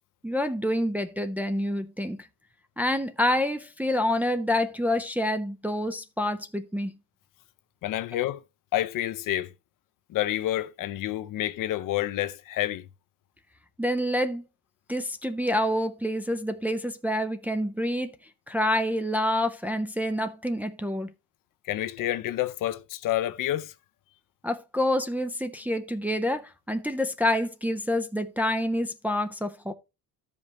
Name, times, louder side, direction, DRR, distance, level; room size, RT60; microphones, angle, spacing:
voice 1, 0.2-2.2 2.8-6.9 13.8-14.4 14.9-18.1 18.5-21.1 24.4-29.7, left 1 dB, 5° right, 0.4 m, -27 dB
voice 2, 7.8-8.4 8.7-9.5 10.1-12.9 21.7-23.7, left 13 dB, 65° left, 0.6 m, -29 dB
13.5 x 5.4 x 2.9 m
cardioid pair, 175°, 36 cm